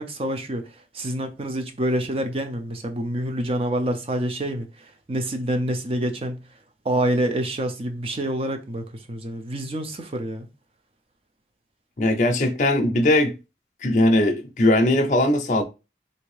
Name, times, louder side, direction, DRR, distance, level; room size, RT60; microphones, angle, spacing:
voice 1, 0.0-4.7 5.1-6.4 6.8-10.5, right 1 dB, 30° right, 0.5 m, -27 dB
voice 2, 12.0-13.3 13.8-15.6, left 1 dB, 40° left, 0.5 m, -19 dB
3.3 x 2.7 x 3.1 m
head